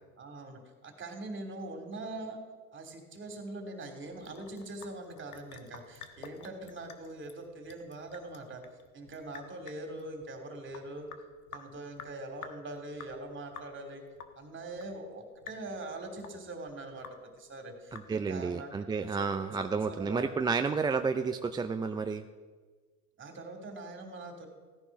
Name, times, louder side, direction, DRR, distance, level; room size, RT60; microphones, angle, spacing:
voice 1, 0.2-2.4 2.7-8.6 8.9-11.1 11.5-14.0 14.3-17.1 17.4-20.3 20.8-20.9 23.2-24.5, right 2 dB, 25° right, 5 dB, 3.2 m, -43 dB
Sink (filling or washing) / Drip, 4.0-18.5, left 7 dB, 90° left, 1.4 m, -51 dB
voice 2, 17.9-22.2, right 5 dB, 10° right, 7 dB, 0.4 m, -31 dB
16.0 x 9.9 x 6.1 m, 1.4 s
hypercardioid pair, 90°, 42 cm